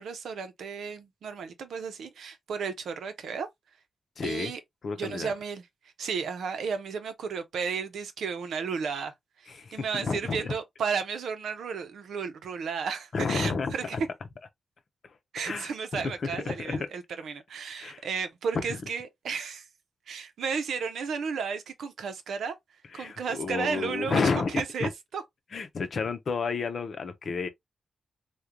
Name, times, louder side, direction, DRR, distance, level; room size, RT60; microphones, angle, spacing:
voice 1, 0.0-3.5 4.2-4.6 5.0-5.6 6.0-9.1 9.4-14.0 15.3-19.7 20.1-22.5 22.9-25.2, right 6 dB, 85° right, 0.7 m, -33 dB
voice 2, 4.2-4.5 4.8-5.3 9.5-10.5 13.1-14.0 15.4-16.9 17.8-18.0 18.7-18.8 22.9-24.5 24.8-24.9 25.5-27.5, left 4 dB, 60° left, 0.7 m, -31 dB
3.6 x 2.3 x 2.9 m
cardioid pair, 75°, 0 cm